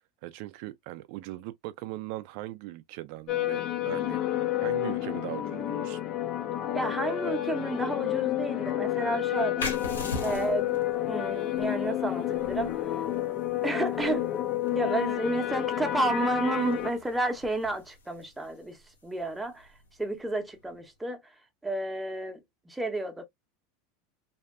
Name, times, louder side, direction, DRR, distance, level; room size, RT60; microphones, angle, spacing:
voice 1, 0.2-4.2 4.6-6.0, right 17 dB, 60° right, 0.4 m, -39 dB
sound 1, 3.3-16.9, left 13 dB, 45° left, 0.5 m, -30 dB
voice 2, 6.7-9.7 10.2-10.8 11.1-13.0 13.6-14.3 14.7-18.8 19.0-19.7 20.0-21.2 21.6-23.2, right 2 dB, 10° right, 0.8 m, -31 dB
sound 2, 9.6-20.9, left 2 dB, 85° left, 0.6 m, -43 dB
2.7 x 2.2 x 2.2 m
hypercardioid pair, 90°, 0 cm